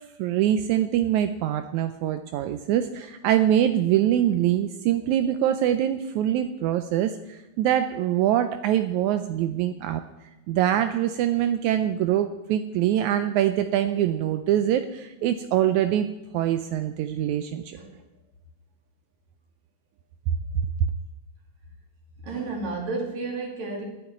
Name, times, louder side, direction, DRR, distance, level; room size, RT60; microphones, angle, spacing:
voice 1, 0.2-10.0 10.5-16.1 16.3-17.8, right 11 dB, 85° right, 9 dB, 1.7 m, -24 dB
voice 2, 22.2-23.8, right 3 dB, 55° right, 1 dB, 3.3 m, -32 dB
10.5 x 9.1 x 9.5 m, 0.99 s
omnidirectional pair, 4.0 m